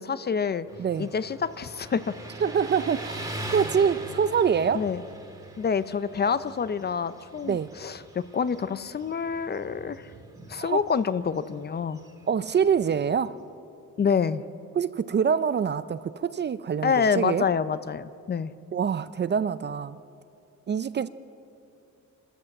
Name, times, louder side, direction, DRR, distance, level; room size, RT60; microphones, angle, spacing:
voice 1, 0.0-0.7 1.0-2.1 4.7-5.0 5.6-10.1 10.5-12.0 14.0-14.4 16.8-18.5, left 6 dB, 35° left, 14 dB, 0.5 m, -27 dB
Motorcycle, 0.7-13.3, right 1 dB, 10° right, 2.0 m, -42 dB
voice 2, 0.8-1.1 2.4-4.8 7.4-7.7 10.5-10.8 12.3-13.4 14.8-17.4 18.7-20.0 20.7-21.1, right 7 dB, 35° right, 15 dB, 0.4 m, -25 dB
26.5 x 13.5 x 7.8 m, 2.6 s
wide cardioid pair, 150°, 31 cm